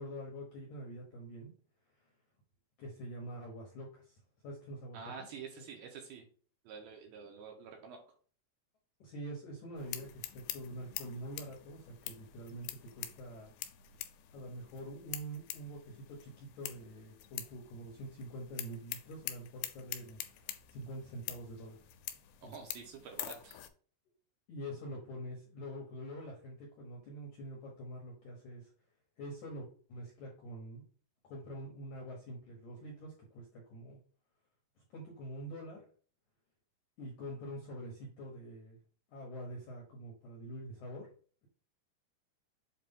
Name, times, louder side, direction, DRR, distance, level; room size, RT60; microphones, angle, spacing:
voice 1, 0.0-1.5 2.8-4.2 4.4-5.0 9.0-13.5 14.3-21.8 22.4-22.5 24.5-28.7 29.2-30.8 31.2-34.0 34.9-35.8 37.0-38.8 39.1-41.1, right 1 dB, 70° left, -1 dB, 1.8 m, -45 dB
voice 2, 4.9-6.2 6.6-8.0 22.4-23.6, right 5 dB, 75° right, 1 dB, 2.5 m, -48 dB
sound 1, 9.8-23.7, left 13 dB, 90° left, 2.9 m, -46 dB
7.5 x 2.6 x 5.3 m, 0.42 s
omnidirectional pair, 4.9 m